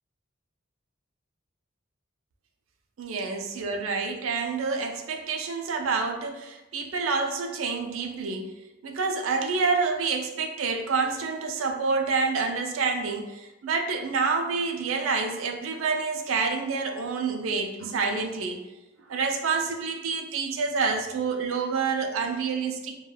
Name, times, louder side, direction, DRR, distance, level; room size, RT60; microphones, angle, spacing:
voice 1, 3.0-8.5 8.8-18.6 19.1-23.0, right 4 dB, 85° right, 4 dB, 0.4 m, -28 dB
2.2 x 2.2 x 3.2 m, 1.0 s
head